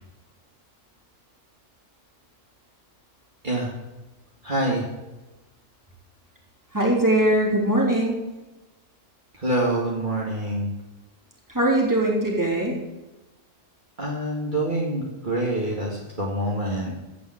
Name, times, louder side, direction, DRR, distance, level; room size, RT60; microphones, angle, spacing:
voice 1, 4.4-4.8 9.4-10.7 14.0-16.9, right 1 dB, 40° right, -4 dB, 2.4 m, -26 dB
voice 2, 6.7-8.2 11.5-12.8, right 1 dB, 15° right, -3 dB, 3.4 m, -21 dB
15.5 x 5.5 x 9.2 m, 1.0 s
omnidirectional pair, 1.3 m